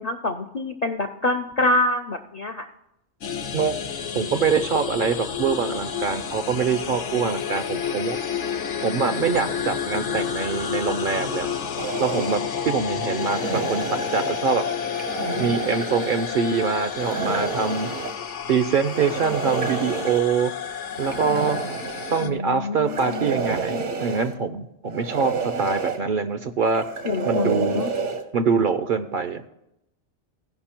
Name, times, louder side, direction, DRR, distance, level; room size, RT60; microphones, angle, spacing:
voice 1, 0.0-2.7 22.2-23.3 27.0-27.9, left 2 dB, 50° left, 4 dB, 0.5 m, -26 dB
sound 1, 3.2-22.3, left 7 dB, 80° left, 1.1 m, -30 dB
voice 2, 4.1-8.2 8.8-11.5 12.0-14.6 15.4-17.9 18.5-20.5 21.0-21.6 22.1-26.9 27.2-27.8 28.3-29.4, right 5 dB, 60° right, 9 dB, 0.6 m, -24 dB
sound 2, 11.8-12.4 13.2-14.4 14.9-16.3 17.0-18.2 18.8-20.2 20.9-22.2 22.9-24.3 24.9-26.0 26.7-28.2, right 4 dB, 75° right, 1.4 m, -29 dB
16.0 x 5.5 x 4.4 m, 0.84 s
omnidirectional pair, 1.2 m